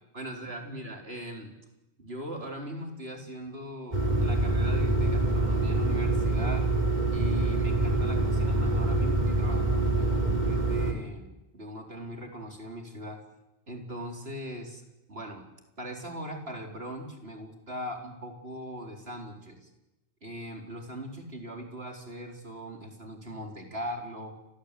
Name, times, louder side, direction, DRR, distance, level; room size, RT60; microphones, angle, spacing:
voice 1, 0.1-1.5 2.0-6.7 7.1-13.2 13.7-14.8 15.1-15.5 15.8-19.7 20.2-24.3, equal, 70° right, 3 dB, 4.6 m, -40 dB
sound 1, 3.9-10.9, right 2 dB, 40° right, 3.7 m, -25 dB
29.5 x 23.0 x 8.5 m, 0.94 s
omnidirectional pair, 1.1 m